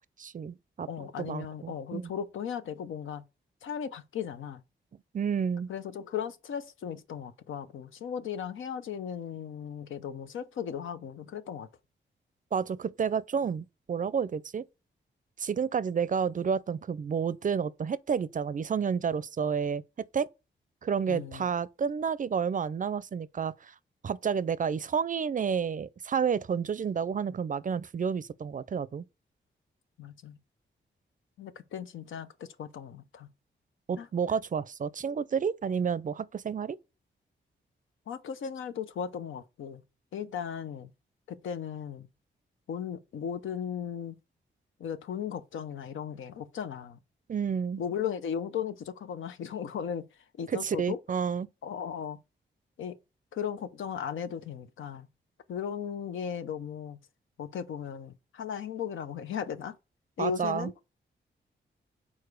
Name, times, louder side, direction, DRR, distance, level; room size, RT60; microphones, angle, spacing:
voice 1, 0.2-0.9 1.2-2.1 5.1-5.7 12.5-14.6 15.4-19.8 20.1-20.3 20.8-23.7 24.0-29.0 33.9-36.8 47.3-47.8 50.5-51.5 60.2-60.7, right 6 dB, 40° right, 0.4 m, -30 dB
voice 2, 0.9-3.2 3.6-4.6 5.7-11.7 21.1-21.5 30.0-30.4 31.4-33.3 34.0-34.1 38.1-39.8 40.1-40.9 41.3-42.1 42.7-44.2 44.8-47.0 47.8-50.0 50.4-51.0 51.6-52.2 52.8-53.0 53.3-55.1 55.5-57.0 57.4-59.7 60.2-60.7, left 8 dB, 85° left, 0.6 m, -36 dB
4.8 x 4.2 x 4.7 m
cardioid pair, 65°, 20 cm